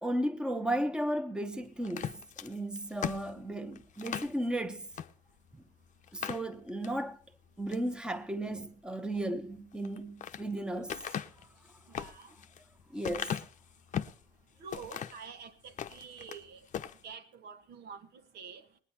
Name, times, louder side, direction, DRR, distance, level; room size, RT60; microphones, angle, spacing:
voice 1, 0.0-4.9 5.5-5.6 6.1-7.2 7.6-11.0 11.4-11.5 12.9-13.4, right 1 dB, 5° right, 1.0 m, -35 dB
sound 1, 1.8-4.4 4.9-5.1 5.5-5.6 6.0-7.0 7.5-7.9 9.7-10.4 10.9-14.2 14.7-15.3 15.7-16.4 16.7-17.0, left 9 dB, 45° left, 0.8 m, -38 dB
voice 2, 11.9-12.3 14.6-16.7 17.0-18.7, right 6 dB, 80° right, 1.6 m, -48 dB
19.0 x 9.7 x 4.2 m
cardioid pair, 110°, 17 cm